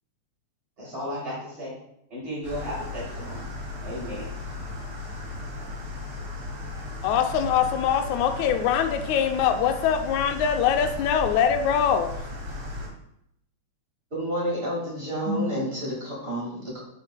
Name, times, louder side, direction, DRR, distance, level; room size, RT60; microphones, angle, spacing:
voice 1, 0.8-1.7 2.1-3.5 3.8-4.3, equal, 40° right, -7 dB, 3.7 m, -34 dB
sound 1, 2.4-12.9, left 2 dB, 60° right, 3.5 m, -36 dB
voice 2, 7.0-12.1, left 8 dB, 80° left, 7 dB, 1.9 m, -23 dB
voice 3, 14.1-16.8, equal, 25° right, -4 dB, 1.6 m, -29 dB
9.4 x 6.1 x 2.2 m, 0.77 s
omnidirectional pair, 3.4 m